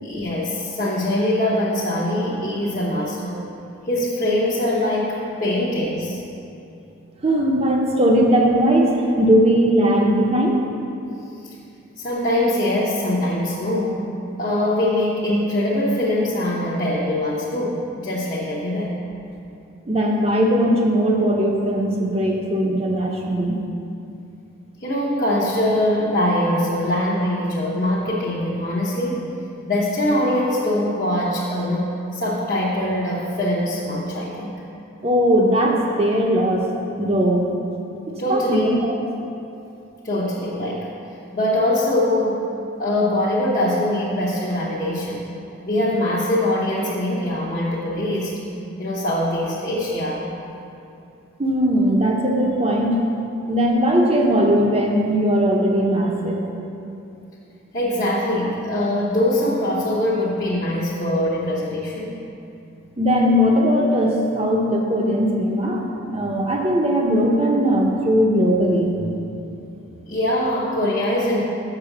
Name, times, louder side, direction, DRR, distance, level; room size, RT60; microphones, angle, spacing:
voice 1, 0.0-3.5 3.9-6.2 11.4-11.5 12.0-14.0 14.4-19.0 24.8-29.2 29.6-31.9 32.1-34.6 38.2-38.7 40.0-40.9 41.3-42.5 42.8-45.3 45.6-48.3 48.8-50.3 57.7-62.2 70.1-71.4, left 1 dB, 40° left, -7 dB, 0.9 m, -22 dB
voice 2, 7.2-10.6 19.9-23.6 35.0-36.6 37.0-37.4 38.1-38.9 51.4-53.0 53.5-56.4 63.0-69.2, equal, 30° right, 0 dB, 0.8 m, -19 dB
6.9 x 6.2 x 5.9 m, 2.7 s
head